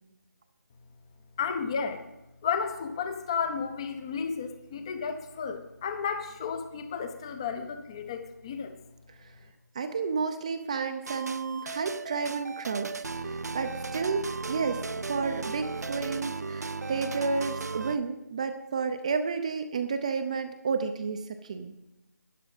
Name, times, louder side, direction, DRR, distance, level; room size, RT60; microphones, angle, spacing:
voice 1, 1.4-2.0 2.4-8.7, left 6 dB, 15° left, 9 dB, 0.7 m, -33 dB
voice 2, 9.7-14.8 15.1-21.7, right 5 dB, 20° right, 8 dB, 0.6 m, -31 dB
sound 1, 11.1-18.0, right 4 dB, 60° right, 0.6 m, -36 dB
12.5 x 9.3 x 5.5 m, 0.92 s
figure-of-eight pair, 160°, 10 cm